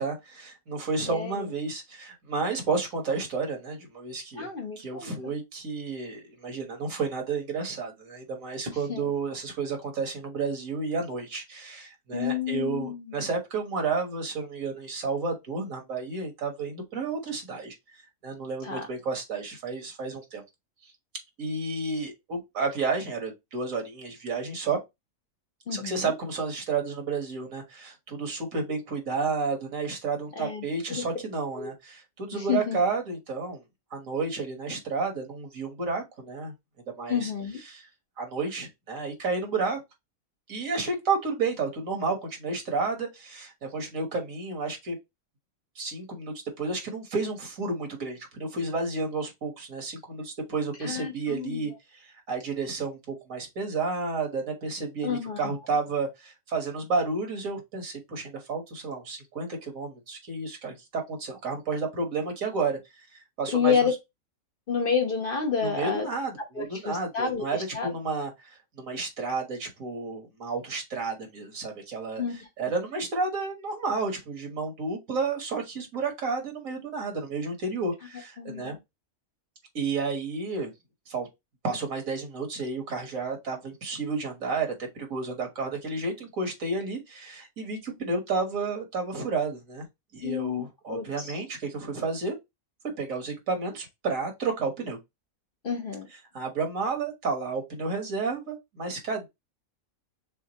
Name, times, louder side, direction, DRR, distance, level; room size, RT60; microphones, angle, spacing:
voice 1, 0.0-4.5 4.8-17.8 18.2-20.4 21.4-24.8 25.7-33.6 33.9-36.5 36.9-37.3 37.7-37.9 38.2-39.8 40.5-45.0 45.8-51.7 52.3-62.8 63.4-63.9 65.6-78.8 79.8-80.7 81.1-81.3 81.6-89.9 90.1-92.4 92.8-95.0 96.3-99.3, right 4 dB, 70° right, 1.7 m, -31 dB
voice 2, 1.1-1.5 4.4-5.3 8.9-9.1 12.1-13.1 18.6-18.9 25.7-26.1 30.4-30.6 30.9-31.0 31.6-31.7 32.3-32.8 37.1-37.6 50.8-51.7 55.0-55.5 63.5-63.9 64.7-66.1 66.5-67.9 72.2-72.3 78.4-78.8 90.2-91.3 95.6-96.1, left 6 dB, 45° left, 1.0 m, -29 dB
6.4 x 2.4 x 2.9 m
omnidirectional pair, 1.5 m